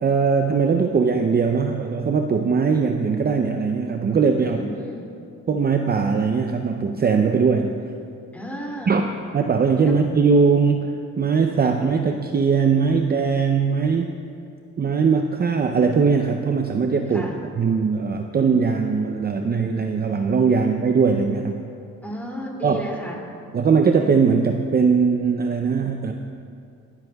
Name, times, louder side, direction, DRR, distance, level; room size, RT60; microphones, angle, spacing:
voice 1, 0.0-4.6 5.5-7.7 8.9-9.1 9.3-14.1 14.8-17.3 17.6-21.6 22.6-22.8 23.5-26.1, right 5 dB, 30° right, 4 dB, 0.6 m, -20 dB
voice 2, 4.4-5.1 8.3-9.0 9.8-9.9 17.1-17.4 22.0-23.3, equal, 5° left, -2 dB, 2.6 m, -33 dB
17.0 x 13.0 x 2.3 m, 2.4 s
cardioid pair, 90°, 30 cm